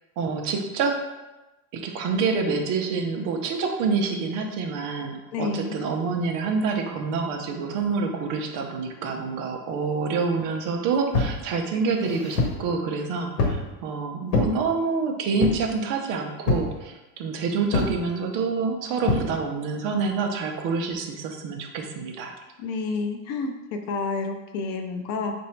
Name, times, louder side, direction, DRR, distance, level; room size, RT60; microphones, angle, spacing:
voice 1, 0.2-0.9 1.7-22.3, right 4 dB, 45° right, 3 dB, 0.6 m, -27 dB
voice 2, 5.3-5.8 22.6-25.3, left 4 dB, 40° left, 5 dB, 0.4 m, -29 dB
sound 1, 11.1-11.4 12.0-12.6 13.4-13.7 14.3-14.6 15.4-15.7 16.5-16.7 17.7-18.0 19.1-19.3, left 3 dB, 75° left, 1.1 m, -24 dB
4.1 x 2.6 x 4.4 m, 1.1 s
supercardioid pair, 155°, 47 cm